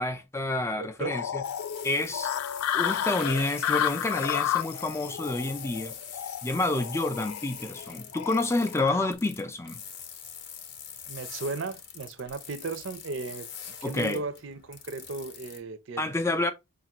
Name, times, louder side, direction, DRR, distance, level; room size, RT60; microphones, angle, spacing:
voice 1, 0.0-1.4 1.8-2.3 2.7-6.0 6.4-9.8 13.8-14.2 16.0-16.5, left 2 dB, 15° left, 0.4 m, -29 dB
voice 2, 0.8-1.1 11.1-16.1, right 3 dB, 60° right, 0.5 m, -36 dB
sound 1, 1.0-9.1, left 10 dB, 90° left, 0.3 m, -32 dB
sound 2, 1.4-15.6, left 8 dB, 55° left, 0.6 m, -44 dB
4.9 x 2.4 x 2.8 m
head